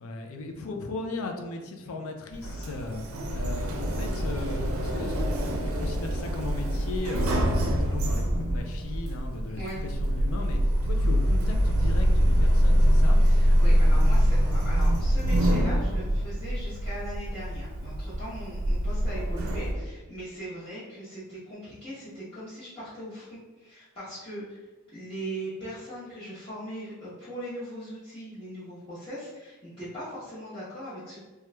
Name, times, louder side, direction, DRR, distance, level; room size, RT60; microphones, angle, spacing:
voice 1, 0.0-3.0 3.3-7.4 7.7-13.2, left 2 dB, 70° left, 4 dB, 0.4 m, -37 dB
Sliding door, 2.3-19.7, equal, 70° right, 0.5 m, -24 dB
voice 2, 13.2-31.2, equal, 25° left, -15 dB, 0.9 m, -40 dB
2.9 x 2.3 x 3.2 m, 1.2 s
head